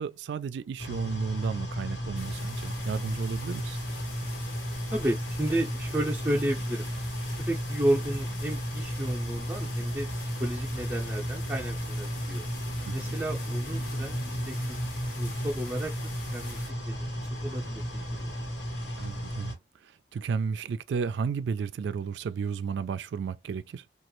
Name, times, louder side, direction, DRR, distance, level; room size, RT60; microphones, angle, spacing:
voice 1, 0.0-3.8 12.8-13.2 19.0-19.5 19.8-23.8, right 5 dB, 80° right, 0.3 m, -33 dB
sound 1, 0.8-19.5, equal, 80° left, 1.2 m, -34 dB
sound 2, 2.2-16.7, left 4 dB, 50° left, 0.9 m, -47 dB
voice 2, 4.9-6.9 7.4-12.4 12.9-14.8 15.2-15.9 16.3-18.3, right 1 dB, 10° right, 0.5 m, -32 dB
3.0 x 2.4 x 3.0 m
head